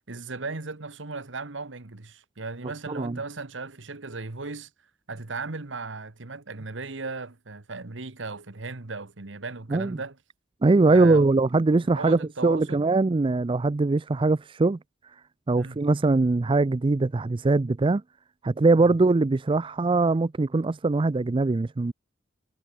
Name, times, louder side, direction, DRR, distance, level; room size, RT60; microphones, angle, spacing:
voice 1, 0.1-4.7 5.1-10.2 10.9-11.3 11.9-12.9 15.6-15.8 18.8-18.9, right 3 dB, 75° right, 1.4 m, -36 dB
voice 2, 2.9-3.2 9.7-10.0 10.6-14.8 15.5-18.0 18.4-21.9, right 3 dB, 25° right, 0.4 m, -22 dB
head